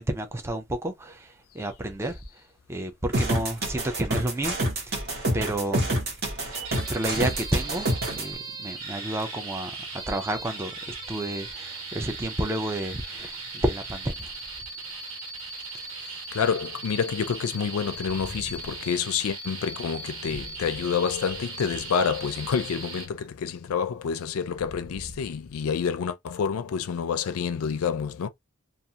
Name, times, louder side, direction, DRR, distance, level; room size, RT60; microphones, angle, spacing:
voice 1, 0.0-2.2 2.7-4.5 4.8-5.0 5.3-6.1 6.9-9.7 10.1-13.4 13.6-14.3, right 1 dB, 10° right, 0.4 m, -30 dB
sound 1, 3.1-8.2, right 1 dB, 50° right, 1.1 m, -27 dB
sound 2, 6.5-23.1, right 3 dB, 75° right, 1.4 m, -38 dB
voice 2, 16.0-28.3, left 6 dB, 85° left, 0.4 m, -28 dB
2.4 x 2.4 x 2.7 m
head